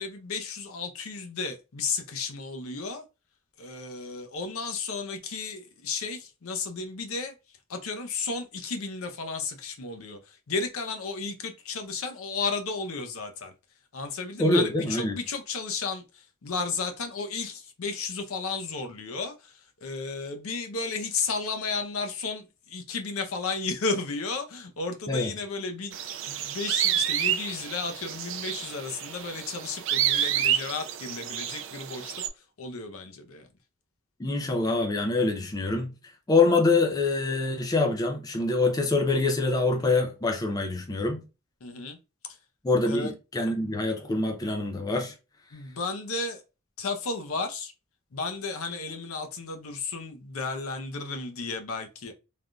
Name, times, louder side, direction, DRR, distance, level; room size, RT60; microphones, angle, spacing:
voice 1, 0.0-3.0 3.6-7.3 7.7-13.5 13.9-33.5 41.6-42.0 42.3-42.4 42.9-43.1 45.5-46.4 46.8-47.7 48.1-52.1, left 4 dB, 80° left, 0.6 m, -33 dB
voice 2, 14.4-15.2 25.1-25.3 34.2-35.9 36.3-41.2 42.6-45.1, left 3 dB, 15° left, 0.3 m, -25 dB
sound 1, 25.9-32.3, right 10 dB, 60° right, 0.4 m, -29 dB
3.3 x 2.5 x 2.2 m
head